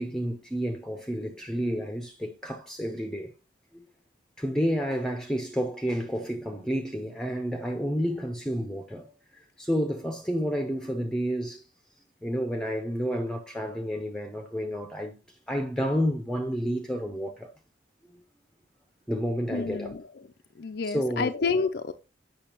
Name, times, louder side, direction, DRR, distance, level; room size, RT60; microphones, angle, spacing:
voice 1, 0.0-3.3 3.7-3.9 4.4-11.6 12.2-15.2 15.5-17.5 18.1-18.2 19.1-20.0 20.8-21.3, equal, 5° left, 0.7 m, -30 dB
voice 2, 19.5-20.0 20.6-21.9, left 4 dB, 55° left, 0.5 m, -29 dB
8.6 x 6.0 x 3.0 m
head